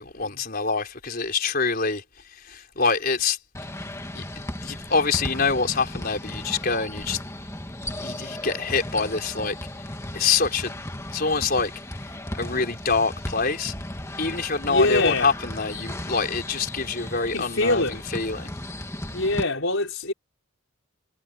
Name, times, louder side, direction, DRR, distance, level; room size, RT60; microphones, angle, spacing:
voice 1, 0.0-2.0 2.4-3.4 4.1-4.2 4.6-7.2 8.0-9.5 10.1-10.7 11.1-11.7 12.3-13.7 14.2-18.5, left 4 dB, 45° left, 4.8 m, -25 dB
sound 1, 3.5-19.4, left 1 dB, 15° left, 2.2 m, -36 dB
voice 2, 14.7-15.3 17.3-18.0 19.1-20.1, left 2 dB, 70° left, 5.0 m, -23 dB
head